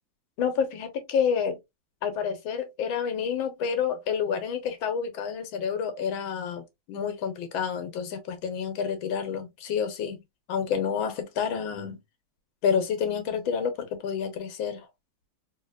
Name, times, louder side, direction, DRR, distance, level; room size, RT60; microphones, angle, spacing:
voice 1, 0.4-1.6 2.0-10.2 10.5-12.0 12.6-14.9, left 7 dB, 90° left, 1.7 m, -29 dB
3.9 x 2.8 x 2.4 m
omnidirectional pair, 2.1 m